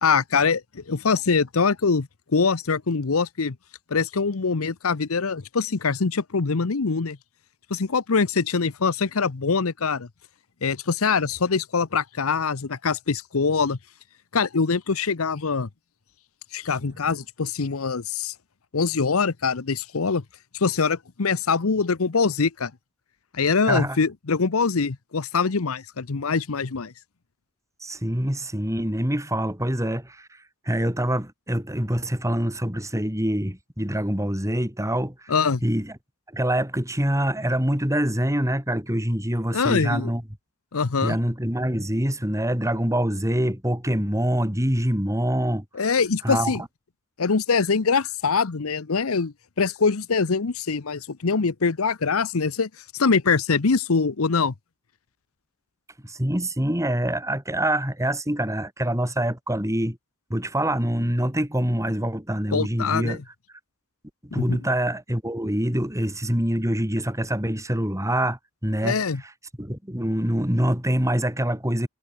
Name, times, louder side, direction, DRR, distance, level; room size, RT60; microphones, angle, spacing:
voice 1, 0.0-3.6 3.9-7.2 7.7-10.1 10.6-13.8 14.3-15.7 16.5-18.3 18.7-20.2 20.5-22.7 23.3-26.9 35.3-35.6 39.5-40.1 40.7-41.2 45.7-46.6 47.2-52.7 53.0-54.5 62.5-63.2 64.3-64.6 68.8-69.2, left 5 dB, 85° left, 0.9 m, -23 dB
voice 2, 23.6-24.0 27.8-30.3 30.6-35.3 35.6-35.9 36.3-40.2 41.0-45.6 46.2-46.7 56.0-60.0 60.3-63.2 64.2-69.0 69.6-71.9, right 1 dB, 15° right, 4.8 m, -25 dB
head